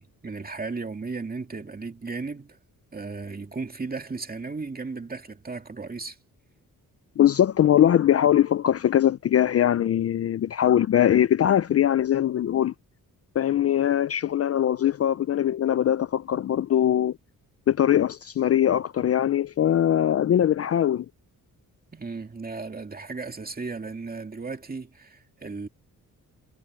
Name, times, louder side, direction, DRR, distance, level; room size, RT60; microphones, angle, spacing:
voice 1, 0.0-2.6 2.9-6.2 21.9-25.7, right 4 dB, 25° right, 2.3 m, -35 dB
voice 2, 7.2-12.7 13.4-17.2 17.7-21.1, left 10 dB, 45° left, 0.4 m, -21 dB
cardioid pair, 105°, 34 cm